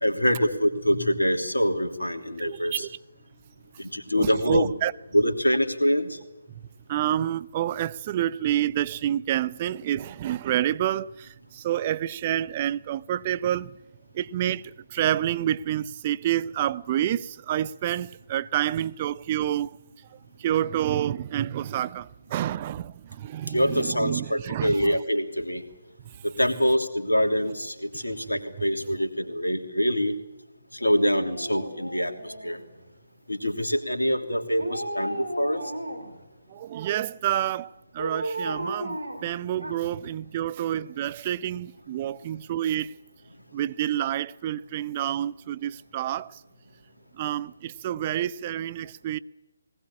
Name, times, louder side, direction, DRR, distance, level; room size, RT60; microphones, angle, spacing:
voice 1, 0.0-2.9 3.8-4.7 5.1-6.2 23.5-25.6 26.2-30.1 30.8-32.6 33.3-35.6, equal, 90° left, 3.0 m, -25 dB
voice 2, 2.4-3.0 4.2-4.9 6.9-13.8 14.1-19.8 20.4-25.0 36.5-42.9 43.5-46.4 47.1-49.2, right 12 dB, 30° right, 0.7 m, -28 dB
Dog, 30.8-32.9 34.5-36.2 38.0-40.1 40.4-40.5, right 1 dB, 85° right, 4.7 m, -35 dB
20.0 x 20.0 x 8.7 m
figure-of-eight pair, 145°, 0 cm